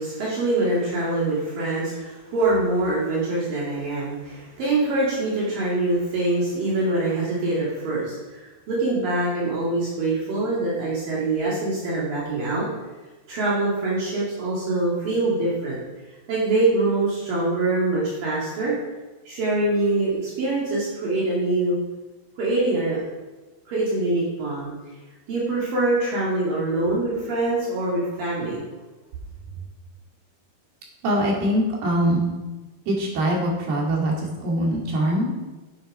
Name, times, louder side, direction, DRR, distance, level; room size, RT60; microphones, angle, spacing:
voice 1, 0.0-12.7 13.3-15.8 16.3-18.7 19.3-21.8 22.4-23.0 23.7-24.7 25.3-28.6, right 2 dB, 65° right, -7 dB, 3.9 m, -24 dB
voice 2, 31.0-32.3 32.9-35.3, right 1 dB, 85° right, -2 dB, 4.4 m, -23 dB
10.0 x 8.7 x 5.4 m, 1.2 s
omnidirectional pair, 4.5 m